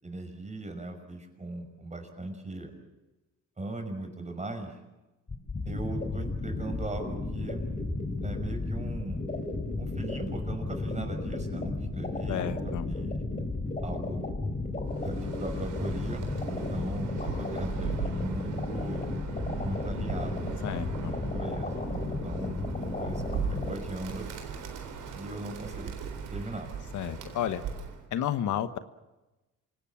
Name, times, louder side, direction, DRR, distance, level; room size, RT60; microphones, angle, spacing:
voice 1, 0.0-2.7 3.6-4.7 5.6-7.7 8.2-9.2 9.8-12.6 12.8-13.1 13.8-14.2 15.0-19.0 19.6-20.5 21.0-21.8 22.2-22.6 23.0-24.3 25.1-25.9 26.3-26.7, right 2 dB, 25° right, 6 dB, 5.8 m, -39 dB
sound 1, 5.3-23.8, left 2 dB, 25° left, 4.1 m, -33 dB
voice 2, 12.3-12.9 20.6-21.1 26.9-27.6 28.1-28.8, left 10 dB, 75° left, 11 dB, 1.3 m, -31 dB
Bird, 14.9-28.0, right 6 dB, 85° right, 3.9 m, -39 dB
27.0 x 18.0 x 8.7 m, 1.1 s
cardioid pair, 90°, 30 cm